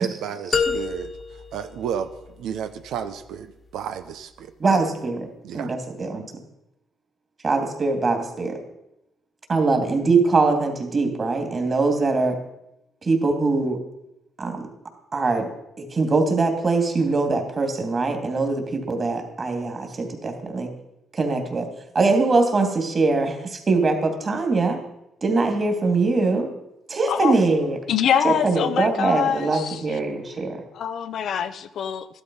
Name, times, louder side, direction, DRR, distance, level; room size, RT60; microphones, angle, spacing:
voice 1, 0.0-2.1 2.4-4.5 5.4-5.7, right 8 dB, 85° right, 9 dB, 0.9 m, -32 dB
sound 1, 0.5-2.6, left 5 dB, 40° left, 1.4 m, -28 dB
voice 2, 4.6-6.3 7.4-8.6 9.5-12.4 13.0-13.8 14.4-14.7 15.1-20.7 21.1-21.7 21.9-24.8 25.2-26.5 26.9-27.8 28.2-30.6, right 3 dB, 35° right, 5 dB, 2.8 m, -22 dB
voice 3, 27.9-30.0 30.7-32.1, left 8 dB, 70° left, 12 dB, 0.8 m, -24 dB
13.5 x 12.0 x 5.5 m, 0.87 s
cardioid pair, 90°, 0 cm